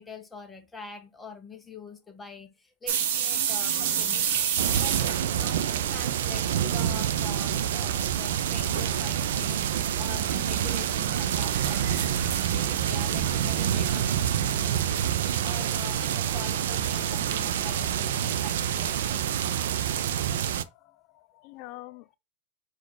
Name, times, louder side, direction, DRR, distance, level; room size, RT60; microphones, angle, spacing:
voice 1, 0.0-4.3 4.7-19.5 19.9-20.1 21.6-21.7, left 4 dB, 10° left, 0.7 m, -44 dB
sound 1, 2.9-6.7 6.9-7.6 8.0-8.1 8.7-9.1 10.1-15.5, right 8 dB, 70° right, 0.8 m, -32 dB
sound 2, 3.3-12.9, right 2 dB, 55° right, 1.0 m, -51 dB
sound 3, 4.6-20.6, right 10 dB, 85° right, 0.4 m, -27 dB
voice 2, 19.8-20.5 20.8-22.1, left 18 dB, 45° left, 0.3 m, -47 dB
4.3 x 2.4 x 4.7 m
supercardioid pair, 155°, 0 cm